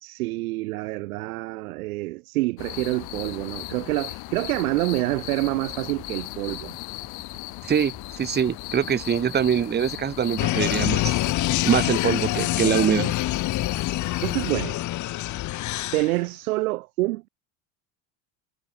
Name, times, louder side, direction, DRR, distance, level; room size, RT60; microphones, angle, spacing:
voice 1, 0.0-6.7 14.2-14.8 15.9-17.3, right 20 dB, 90° right, 1.9 m, -27 dB
sound 1, 2.6-14.5, left 24 dB, 65° left, 6.6 m, -37 dB
sound 2, 4.3-13.9, right 1 dB, 5° right, 5.8 m, -52 dB
voice 2, 7.6-11.2 11.6-13.1, right 8 dB, 25° right, 1.3 m, -24 dB
sound 3, 10.4-16.1, left 16 dB, 45° left, 1.1 m, -26 dB
supercardioid pair, 120°, 42 cm